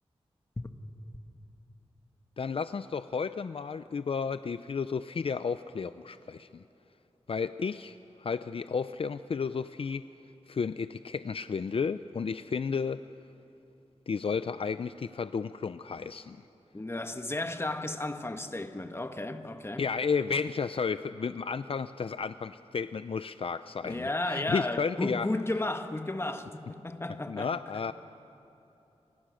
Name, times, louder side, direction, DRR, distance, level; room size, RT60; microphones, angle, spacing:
voice 1, 2.4-6.6 7.3-10.0 10.5-13.0 14.1-16.4 19.8-25.3 27.3-27.9, left 5 dB, 60° left, 0.5 m, -32 dB
voice 2, 16.7-19.9 23.8-27.6, left 2 dB, 25° left, 1.5 m, -33 dB
30.0 x 25.0 x 6.4 m
wide cardioid pair, 75°, 11 cm